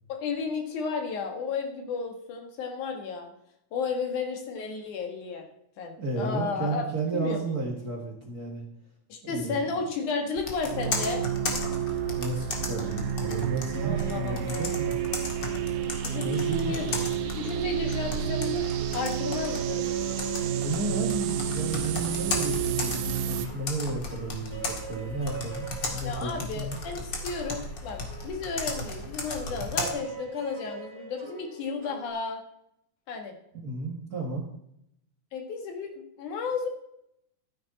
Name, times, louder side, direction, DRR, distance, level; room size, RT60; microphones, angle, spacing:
voice 1, 0.1-3.3 3.7-5.5 5.8-6.8 7.1-7.5 9.1-11.2 13.8-14.7 16.0-16.9 17.4-18.6 18.9-19.9 26.0-32.4 33.1-33.4 35.3-36.7, left 4 dB, 80° left, 3 dB, 3.2 m, -33 dB
voice 2, 6.0-8.6 9.2-9.6 12.2-15.0 16.2-17.0 20.5-26.8 33.5-34.5, right 3 dB, 40° right, -1 dB, 1.6 m, -33 dB
Computer keyboard, 10.4-29.9, left 2 dB, 40° left, 2.2 m, -36 dB
sound 1, 10.7-23.5, right 9 dB, 85° right, 2.3 m, -30 dB
sound 2, 13.2-32.1, right 4 dB, 10° right, 2.7 m, -44 dB
13.5 x 9.6 x 4.1 m, 0.77 s
omnidirectional pair, 3.5 m